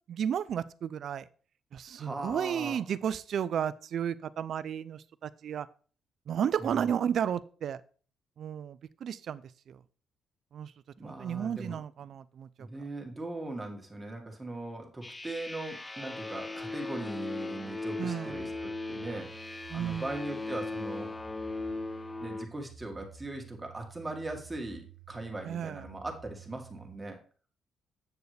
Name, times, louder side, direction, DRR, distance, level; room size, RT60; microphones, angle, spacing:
voice 1, 0.1-1.3 1.7-5.7 6.3-7.8 8.4-9.8 10.5-10.7 11.0-12.7 18.0-18.5 19.7-20.1 25.4-25.8, right 8 dB, 65° right, 17 dB, 0.4 m, -33 dB
voice 2, 2.0-2.8 6.6-6.9 11.0-11.8 12.6-19.4 19.7-21.1 22.2-27.2, right 2 dB, 15° right, 2 dB, 1.9 m, -39 dB
sound 1, 15.0-22.5, left 3 dB, 15° left, 0.5 m, -38 dB
sound 2, 18.3-27.0, right 7 dB, 80° right, 1.2 m, -52 dB
7.9 x 7.0 x 3.3 m, 0.41 s
cardioid pair, 90°, 0 cm